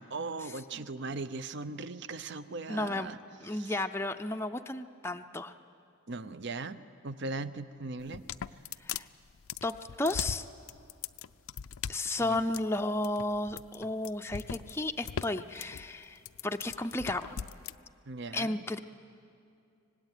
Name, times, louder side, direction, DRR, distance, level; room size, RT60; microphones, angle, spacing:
voice 1, 0.0-3.2 3.5-3.8 6.1-8.2 12.2-12.4 18.1-18.6, right 3 dB, 55° right, 13 dB, 0.7 m, -39 dB
voice 2, 2.7-3.1 3.4-5.5 8.8-9.1 9.6-10.5 11.9-17.4 18.3-18.8, left 2 dB, 10° left, 6 dB, 0.5 m, -33 dB
sound 1, 8.0-17.8, left 8 dB, 75° left, 0.5 m, -40 dB
25.5 x 19.0 x 9.1 m, 2.5 s
head